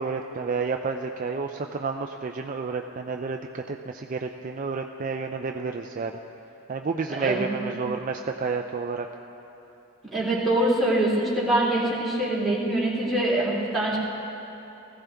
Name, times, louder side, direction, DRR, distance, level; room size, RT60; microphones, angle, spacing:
voice 1, 0.0-6.1 6.7-9.1, right 4 dB, 35° right, 3 dB, 0.4 m, -30 dB
voice 2, 7.1-7.8 10.1-14.0, right 1 dB, ahead, -6 dB, 2.7 m, -24 dB
20.0 x 15.0 x 3.5 m, 2.9 s
head